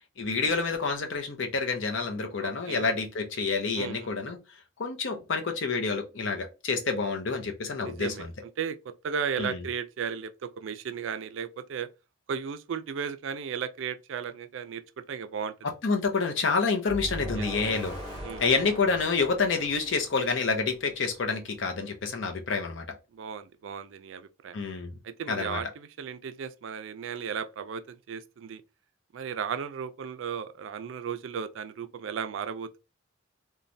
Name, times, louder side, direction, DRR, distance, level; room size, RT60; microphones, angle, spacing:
voice 1, 0.2-4.4 4.8-8.1 9.4-9.6 15.8-17.9 18.4-22.8 24.5-24.9 25.3-25.6, left 4 dB, 65° left, 0.6 m, -28 dB
voice 2, 2.4-2.9 3.8-4.1 7.8-8.3 8.6-11.9 12.3-15.5 17.4-17.5 18.2-18.4 23.1-24.6 25.0-28.6 29.1-32.8, right 7 dB, 70° right, 0.4 m, -35 dB
sound 1, 16.9-20.9, equal, 25° left, 1.6 m, -40 dB
3.1 x 2.2 x 2.6 m
head